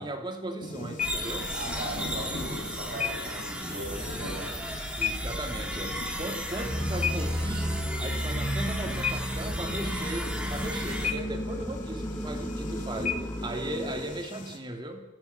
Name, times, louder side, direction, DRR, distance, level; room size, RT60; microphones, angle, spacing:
voice 1, 0.0-1.5 5.0-15.0, right 1 dB, 25° right, 4 dB, 2.6 m, -37 dB
sound 1, 0.6-14.6, left 6 dB, 45° left, 2.9 m, -38 dB
sound 2, 1.0-11.1, equal, 5° right, 2.8 m, -35 dB
voice 2, 1.5-4.5, right 1 dB, 55° right, -1 dB, 7.8 m, -38 dB
sound 3, 6.5-14.2, equal, 15° left, 2.9 m, -33 dB
26.5 x 17.5 x 7.0 m, 1.0 s
head